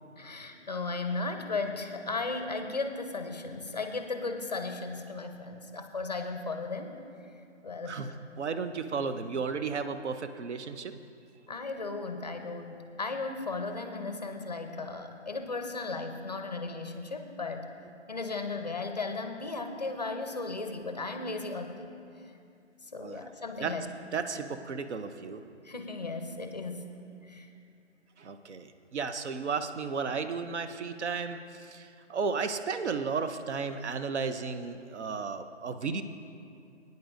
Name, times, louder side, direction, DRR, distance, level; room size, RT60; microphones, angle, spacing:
voice 1, 0.2-7.0 7.6-8.1 11.5-17.7 18.1-21.9 22.2-22.3 22.8-23.9 25.6-26.9 27.2-27.5, left 3 dB, 35° left, 6 dB, 0.5 m, -36 dB
voice 2, 7.9-10.9 23.0-23.3 23.6-23.8 24.1-25.4 28.2-36.0, right 5 dB, 65° right, 9 dB, 0.7 m, -34 dB
18.0 x 9.2 x 2.6 m, 2.5 s
hypercardioid pair, 170°, 37 cm